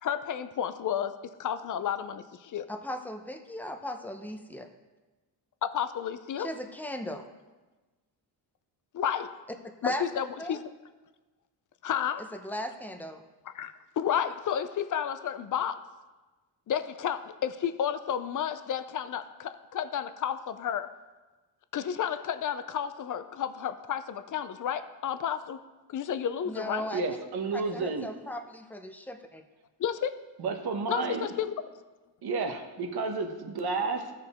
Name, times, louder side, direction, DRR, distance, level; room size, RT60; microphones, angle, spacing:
voice 1, 0.0-2.7 5.6-6.5 8.9-9.3 9.8-10.6 11.8-12.3 13.5-15.8 16.7-20.9 21.7-25.6 25.9-26.9 29.8-30.1 30.9-31.8, left 9 dB, 45° left, 12 dB, 0.6 m, -31 dB
voice 2, 2.7-4.7 6.4-7.3 9.8-10.0 10.4-10.6 12.4-13.2 26.5-27.0 27.5-29.4, left 1 dB, 5° left, 6 dB, 0.8 m, -37 dB
voice 3, 26.9-28.1 30.4-31.3 32.2-34.1, right 4 dB, 60° right, 6 dB, 1.1 m, -31 dB
13.5 x 4.8 x 3.6 m, 1.2 s
cardioid pair, 80°, 42 cm